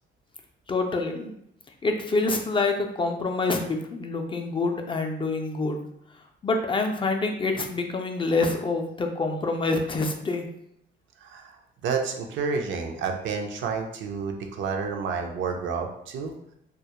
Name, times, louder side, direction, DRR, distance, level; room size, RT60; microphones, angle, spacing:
voice 1, 0.7-1.3 1.8-5.8 6.4-10.4, left 3 dB, 25° left, 4 dB, 0.3 m, -26 dB
voice 2, 11.2-11.6 11.8-16.3, right 5 dB, 75° right, 3 dB, 0.4 m, -30 dB
2.2 x 2.0 x 2.8 m, 0.76 s
cardioid pair, 90°, 20 cm